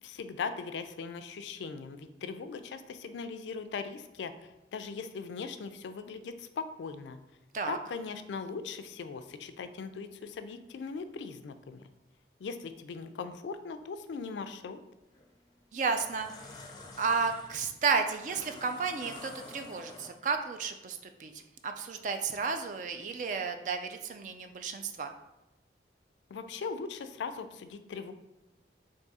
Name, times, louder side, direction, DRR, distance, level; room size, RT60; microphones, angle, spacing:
voice 1, 0.0-7.2 7.7-11.8 12.4-14.8 26.3-28.1, left 5 dB, 85° left, 10 dB, 0.3 m, -39 dB
sound 1, 15.0-15.3 15.8-20.4, left 2 dB, 25° left, 0.4 m, -49 dB
voice 2, 15.7-16.3 17.0-21.3 21.6-25.1, right 5 dB, 45° right, 6 dB, 0.3 m, -32 dB
3.5 x 2.7 x 4.0 m, 0.97 s
head